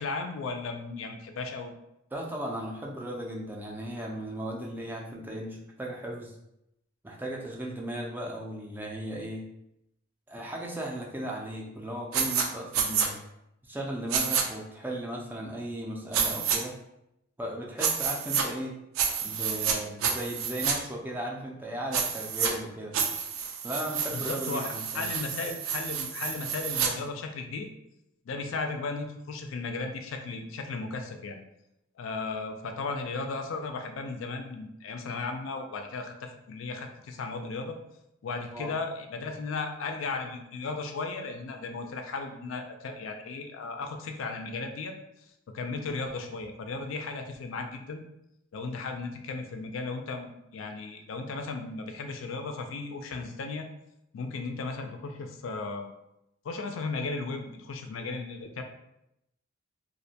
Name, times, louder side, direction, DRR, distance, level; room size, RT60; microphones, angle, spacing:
voice 1, 0.0-1.7 24.1-27.7 28.3-31.4 32.0-37.8 38.2-44.9 45.5-48.0 48.5-53.7 54.1-55.9 56.4-58.6, left 3 dB, 75° left, 5 dB, 0.4 m, -35 dB
voice 2, 2.1-6.3 7.0-9.4 10.3-13.2 13.7-16.8 17.4-18.8 19.2-23.0 23.6-25.1 38.5-38.7, right 1 dB, 10° right, -1 dB, 0.3 m, -36 dB
sound 1, 12.1-12.4 12.7-13.1 14.1-14.4 16.1-16.6 17.8-18.4 18.9-19.8 20.0-20.7 21.9-22.5 22.9-26.9, right 6 dB, 85° right, 0.4 m, -29 dB
2.5 x 2.1 x 2.7 m, 0.83 s
head